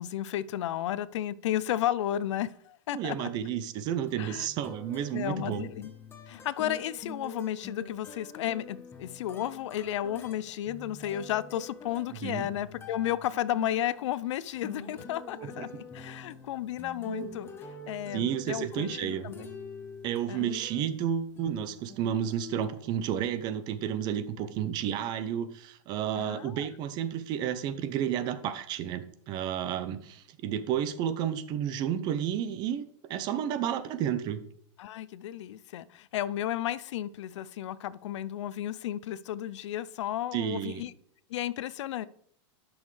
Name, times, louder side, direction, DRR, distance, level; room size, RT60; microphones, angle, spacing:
voice 1, 0.0-3.3 4.2-4.5 5.1-5.9 6.3-17.5 17.9-19.5 20.3-20.5 26.1-26.7 34.8-40.9 41.3-42.1, left 12 dB, 70° left, 0.5 m, -33 dB
voice 2, 2.9-5.7 12.2-12.4 15.6-15.7 18.1-19.3 20.0-32.8 33.1-34.4 40.3-40.8, right 9 dB, 25° right, 0.6 m, -31 dB
sound 1, 4.1-21.1 21.4-22.6, left 2 dB, 15° left, 1.0 m, -46 dB
11.0 x 6.2 x 3.2 m
supercardioid pair, 165°, 16 cm